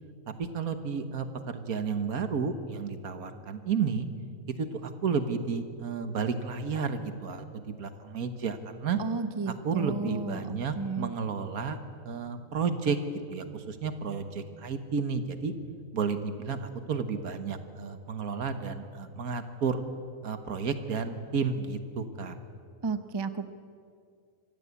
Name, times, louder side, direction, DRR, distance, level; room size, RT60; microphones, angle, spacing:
voice 1, 0.4-4.1 4.6-9.0 9.6-11.8 12.0-13.0 13.3-15.5 15.9-19.8 20.2-22.4, right 5 dB, 70° right, 9 dB, 1.7 m, -32 dB
voice 2, 9.0-11.1 22.8-23.5, right 4 dB, 30° right, 11 dB, 0.5 m, -33 dB
24.5 x 16.0 x 8.3 m, 2.4 s
omnidirectional pair, 1.6 m